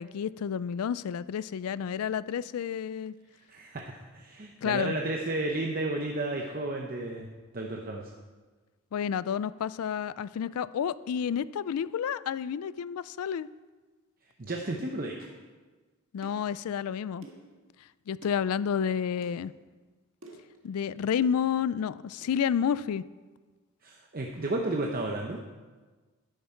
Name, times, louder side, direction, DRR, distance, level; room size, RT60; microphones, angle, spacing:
voice 1, 0.0-3.1 4.6-5.0 8.9-13.5 16.1-17.3 18.1-19.5 20.6-23.1, left 8 dB, 80° left, 17 dB, 0.3 m, -30 dB
voice 2, 3.5-8.1 14.4-15.3 23.8-25.4, right 2 dB, 40° right, 1 dB, 0.8 m, -33 dB
sound 1, 15.2-15.4 16.2-16.5 17.2-17.5 18.2-18.4 19.2-19.4 20.2-20.5 21.2-21.4 22.2-22.3, right 2 dB, 60° right, 1.6 m, -50 dB
10.5 x 9.4 x 4.4 m, 1.3 s
head